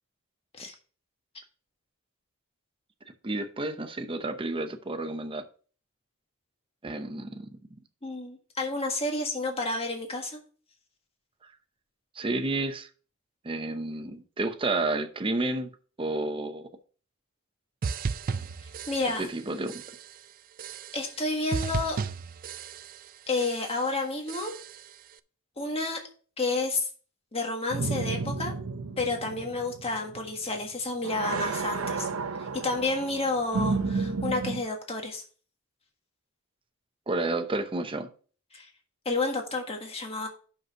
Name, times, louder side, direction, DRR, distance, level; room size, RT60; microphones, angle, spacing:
voice 1, 3.2-5.4 6.8-7.6 12.1-12.9 13.4-15.7 16.0-16.7 19.2-19.7 37.1-38.1, right 2 dB, 25° right, 0.8 m, -30 dB
voice 2, 8.0-10.4 18.9-19.2 20.9-22.0 23.3-24.5 25.6-26.0 26.4-26.9 27.3-28.5 29.0-32.1 32.6-35.2 38.5-38.7 39.0-40.3, left 3 dB, 30° left, 1.6 m, -30 dB
sound 1, 17.8-19.4 19.7-20.2 20.6-21.2 21.5-23.1 23.4-23.9 24.3-24.9, right 5 dB, 40° right, 0.3 m, -35 dB
sound 2, 27.7-30.7 31.0-34.6, right 4 dB, 70° right, 0.7 m, -32 dB
6.0 x 5.4 x 6.1 m
head